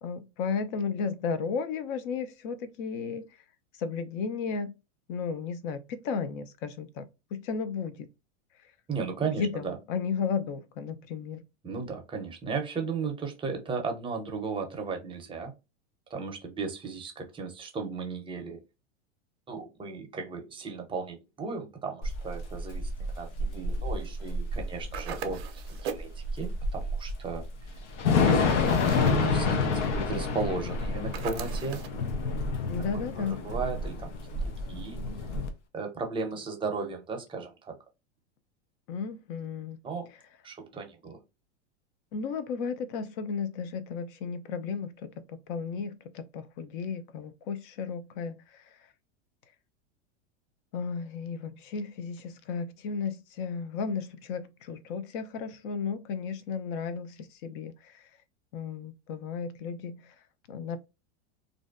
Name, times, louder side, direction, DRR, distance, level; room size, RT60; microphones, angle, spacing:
voice 1, 0.0-3.3 3.8-4.7 5.1-8.1 9.3-11.4 32.7-33.4 38.9-39.8 42.1-48.7 50.7-58.0 58.5-60.1 60.5-60.8, left 5 dB, 50° left, 0.5 m, -34 dB
voice 2, 8.9-9.7 11.6-15.5 16.1-18.6 19.5-27.4 28.3-31.8 32.9-34.1 34.4-35.0 35.7-37.8 39.8-40.1 40.4-41.2, right 4 dB, 15° right, 0.6 m, -36 dB
Thunder / Rain, 22.0-35.5, left 3 dB, 85° left, 0.7 m, -28 dB
sound 1, 24.9-26.2 28.5-29.3 31.1-32.0, right 8 dB, 65° right, 0.6 m, -39 dB
2.5 x 2.2 x 2.4 m
supercardioid pair, 125°, 35 cm